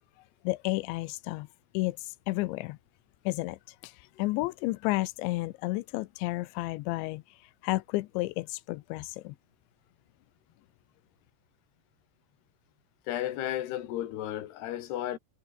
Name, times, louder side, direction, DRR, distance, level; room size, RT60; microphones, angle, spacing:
voice 1, 0.4-1.5 1.7-2.8 3.3-9.4, left 20 dB, 90° left, 3.1 m, -32 dB
voice 2, 13.1-15.2, left 12 dB, 70° left, 3.8 m, -33 dB
omnidirectional pair, 5.1 m